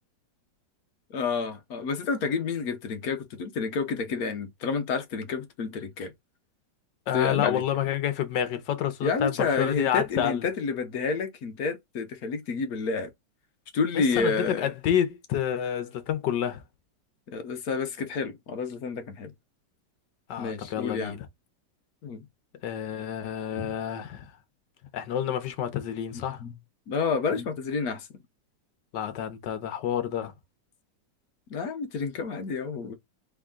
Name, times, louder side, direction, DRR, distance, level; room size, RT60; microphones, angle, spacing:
voice 1, 1.1-6.1 7.1-7.6 9.0-13.1 13.7-14.7 17.3-19.3 20.4-21.2 22.0-22.2 23.6-23.7 26.1-26.5 26.9-28.1 31.5-32.9, left 5 dB, 60° left, 1.3 m, -29 dB
voice 2, 7.1-10.5 13.9-16.6 20.3-21.3 22.6-24.3 24.9-26.4 28.9-30.3, left 10 dB, 80° left, 1.5 m, -29 dB
3.7 x 3.6 x 3.7 m
omnidirectional pair, 1.9 m